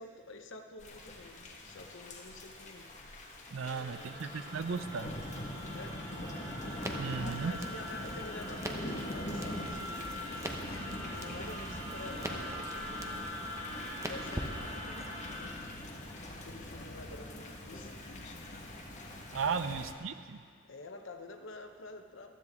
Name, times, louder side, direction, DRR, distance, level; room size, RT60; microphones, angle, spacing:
voice 1, 0.0-2.9 3.6-4.3 5.7-6.0 7.2-13.3 14.0-15.6 16.3-18.4 19.5-19.8 20.3-20.4 20.6-22.3, left 2 dB, 65° left, 5 dB, 0.9 m, -49 dB
Thunder / Rain, 0.8-19.9, left 1 dB, 35° left, 1.5 m, -43 dB
voice 2, 3.5-5.1 7.0-7.5 19.3-20.4, right 5 dB, 70° right, 12 dB, 0.5 m, -35 dB
sound 1, 3.6-15.4, left 1 dB, 50° right, 3.9 m, -44 dB
Crackle, 6.8-15.1, right 1 dB, 15° right, 0.8 m, -45 dB
15.5 x 12.5 x 3.6 m, 2.1 s
head